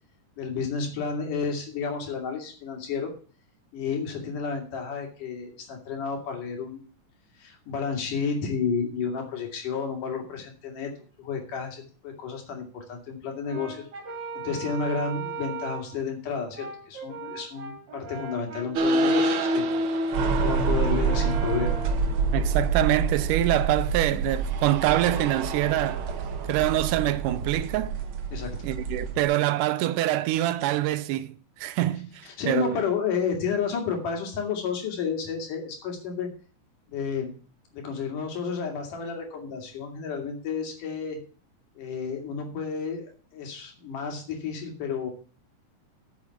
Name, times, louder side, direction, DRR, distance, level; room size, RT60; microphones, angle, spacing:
voice 1, 0.4-3.1 3.7-6.8 7.4-10.9 11.2-13.9 14.4-19.6 20.4-21.8 28.3-28.6 32.2-36.3 36.9-37.3 37.7-41.2 41.8-45.1, left 5 dB, 80° left, 3.8 m, -31 dB
Brass instrument, 13.4-16.0 16.5-23.5, right 4 dB, 40° right, 2.3 m, -39 dB
sound 1, 18.8-29.2, right 3 dB, 65° right, 1.3 m, -26 dB
voice 2, 22.3-26.1 26.5-28.0 28.6-32.8, right 14 dB, 85° right, 2.2 m, -25 dB
8.7 x 6.9 x 7.1 m
omnidirectional pair, 3.7 m